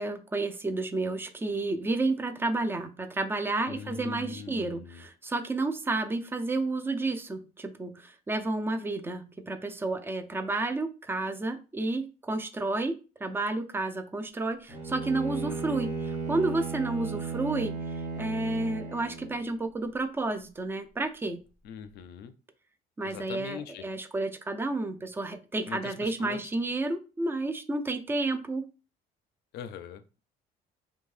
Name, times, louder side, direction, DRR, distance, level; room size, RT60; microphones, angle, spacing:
voice 1, 0.0-17.8 18.2-21.4 23.0-28.6, right 2 dB, 15° right, 9 dB, 0.3 m, -31 dB
voice 2, 3.7-5.1 21.6-22.3 23.0-23.8 25.7-26.4 29.5-30.2, left 7 dB, 75° left, 11 dB, 0.4 m, -41 dB
Bowed string instrument, 14.7-19.5, right 4 dB, 45° right, 1.0 m, -35 dB
2.6 x 2.2 x 3.1 m, 0.33 s
cardioid pair, 110°, 17 cm